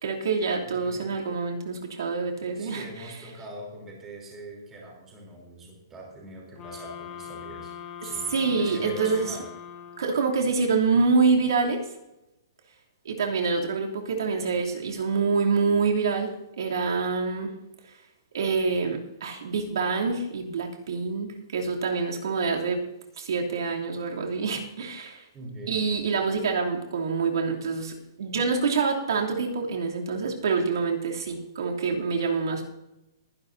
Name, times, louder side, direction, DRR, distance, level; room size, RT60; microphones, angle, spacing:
voice 1, 0.0-2.8 8.3-9.3 10.0-11.9 13.0-16.3 16.6-17.5 18.3-22.8 23.2-25.2 25.7-32.6, right 4 dB, 70° right, 0 dB, 2.9 m, -26 dB
voice 2, 0.6-1.1 2.5-7.7 8.0-9.5 13.1-13.2 25.3-25.8, right 1 dB, 10° right, -1 dB, 3.4 m, -42 dB
sound 1, 6.6-10.4, left 8 dB, 15° left, 1.4 m, -41 dB
22.5 x 11.0 x 2.7 m, 0.90 s
hypercardioid pair, 170°, 2 cm